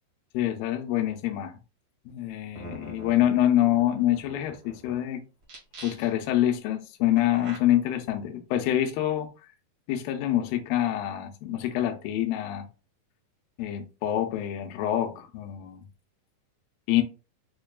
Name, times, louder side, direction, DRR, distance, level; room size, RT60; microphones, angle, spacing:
voice 1, 0.3-1.6 2.1-5.2 5.8-9.3 9.9-12.7 13.6-15.9 16.9-17.0, left 12 dB, 85° left, 2.1 m, -26 dB
sound 1, 2.2-2.3 2.6-5.0 5.4-6.3 7.2-7.6, right 2 dB, 55° right, 1.4 m, -44 dB
6.3 x 2.2 x 2.3 m
omnidirectional pair, 4.5 m